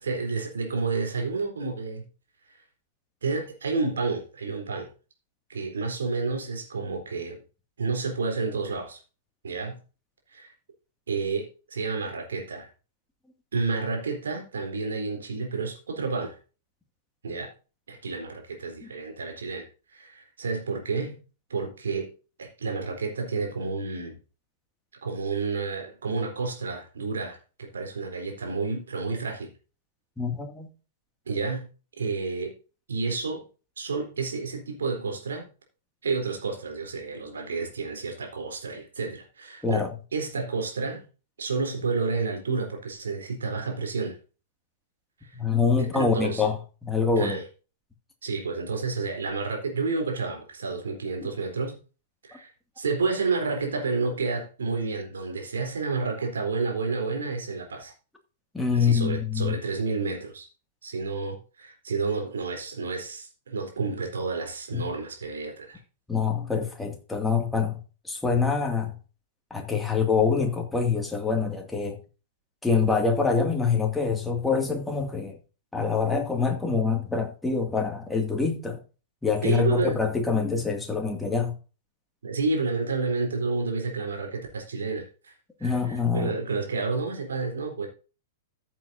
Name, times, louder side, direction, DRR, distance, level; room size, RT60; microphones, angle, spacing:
voice 1, 0.0-2.1 3.2-4.9 5.5-7.4 7.8-9.0 9.4-9.8 10.3-10.5 11.1-12.7 13.5-16.4 17.2-17.5 17.9-21.2 21.5-22.1 22.4-24.2 25.0-29.5 31.3-31.7 32.0-32.5 32.9-33.4 33.8-35.5 36.0-39.8 40.1-41.0 41.4-44.2 45.2-45.3 45.9-46.4 47.2-47.4 48.2-51.8 52.2-52.5 52.8-57.9 58.7-60.5 60.8-65.8 79.4-80.0 82.2-85.3 85.6-87.9, right 4 dB, 70° right, 3.7 m, -30 dB
voice 2, 30.2-30.7 39.6-39.9 45.3-47.4 58.5-59.6 64.7-64.9 66.1-67.8 68.0-68.9 69.5-72.0 72.6-75.4 75.7-78.8 79.2-81.5 85.6-86.3, left 5 dB, 5° left, 2.3 m, -25 dB
14.5 x 7.5 x 2.7 m
figure-of-eight pair, 100°, 0 cm